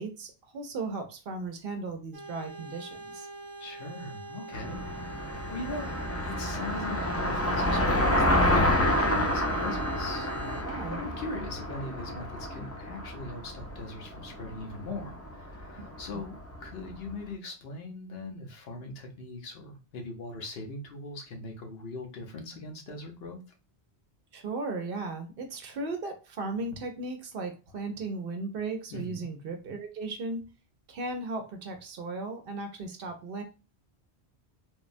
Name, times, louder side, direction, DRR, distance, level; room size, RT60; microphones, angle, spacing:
voice 1, 0.0-3.3 10.6-11.0 15.8-15.9 16.1-16.2 24.3-30.4 30.9-33.4, right 3 dB, 65° right, 5 dB, 0.8 m, -36 dB
sound 1, 2.1-10.6, right 3 dB, 25° right, 0.7 m, -43 dB
voice 2, 3.6-5.9 6.2-23.4 28.9-29.2, left 2 dB, 70° left, 3 dB, 0.9 m, -41 dB
Car passing by, 4.5-16.8, left 1 dB, 20° left, 0.4 m, -29 dB
3.4 x 2.1 x 2.5 m, 0.32 s
omnidirectional pair, 1.1 m